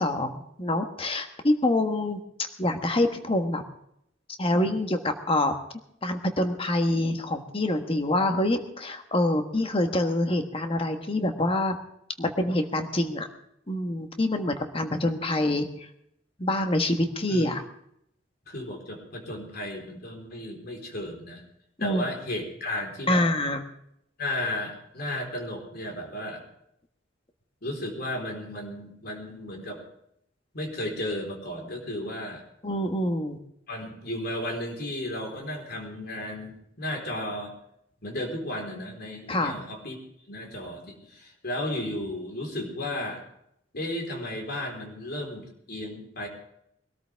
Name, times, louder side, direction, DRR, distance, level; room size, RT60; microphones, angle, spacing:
voice 1, 0.0-2.2 2.6-3.6 4.4-5.0 5.3-5.5 6.0-11.8 12.2-13.3 13.7-15.9 16.4-17.6 21.8-22.0 23.1-23.6 32.6-33.4 39.3-39.6, left 1 dB, 30° left, 6 dB, 1.4 m, -26 dB
voice 2, 18.5-21.4 21.8-23.2 24.2-26.4 27.6-29.8 30.5-32.4 33.7-37.5 38.0-40.0 40.3-43.2 43.7-46.3, left 1 dB, 55° left, 1 dB, 4.2 m, -34 dB
22.5 x 13.5 x 3.5 m, 0.74 s
head